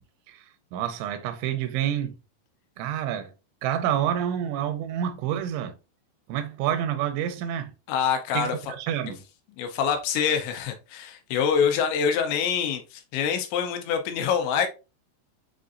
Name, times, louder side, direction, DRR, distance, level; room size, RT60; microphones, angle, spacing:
voice 1, 0.7-2.2 2.8-3.3 3.6-5.8 6.3-7.7 8.3-8.5 8.8-9.2, right 10 dB, 90° right, 3.1 m, -28 dB
voice 2, 7.9-8.6 9.0-9.1 9.6-14.7, left 7 dB, 80° left, 3.0 m, -25 dB
7.5 x 2.5 x 2.5 m
omnidirectional pair, 5.2 m